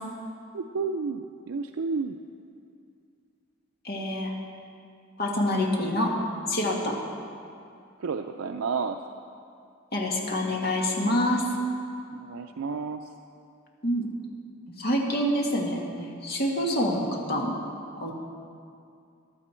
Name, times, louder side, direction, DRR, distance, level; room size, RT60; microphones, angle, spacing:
voice 1, 0.5-2.2 8.0-9.0 12.1-13.0, right 4 dB, 90° right, 5 dB, 0.5 m, -31 dB
voice 2, 3.8-4.3 5.2-6.2 6.5-7.0 9.9-11.5 13.8-14.1 14.8-17.6 18.0-18.1, left 1 dB, 50° left, -1 dB, 1.8 m, -26 dB
14.5 x 12.0 x 4.4 m, 2.4 s
head